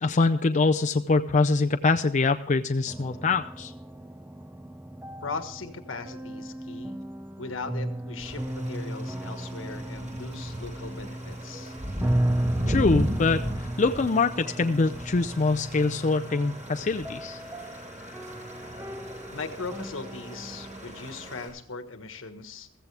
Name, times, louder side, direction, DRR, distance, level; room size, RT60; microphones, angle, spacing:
voice 1, 0.0-3.7 12.7-13.4 13.8-17.4, left 3 dB, 40° left, 7 dB, 0.5 m, -24 dB
sound 1, 2.9-20.8, right 1 dB, 10° right, 0.5 m, -35 dB
voice 2, 5.2-7.0 7.4-11.7 19.3-22.8, left 4 dB, 80° left, 8 dB, 1.5 m, -39 dB
sound 2, 8.2-21.5, equal, 40° right, 7.4 m, -36 dB
15.5 x 14.5 x 3.4 m, 0.62 s
head